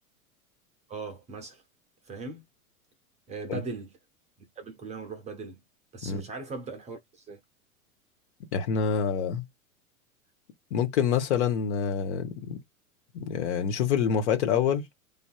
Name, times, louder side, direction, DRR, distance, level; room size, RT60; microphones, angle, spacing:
voice 1, 0.9-1.6 2.0-2.4 3.3-4.0 4.6-5.6 5.9-7.4, right 3 dB, 15° right, 0.6 m, -39 dB
voice 2, 8.5-9.4 10.7-12.6 13.1-14.8, left 7 dB, 50° left, 0.9 m, -26 dB
3.3 x 2.6 x 2.3 m
figure-of-eight pair, 95°, 44 cm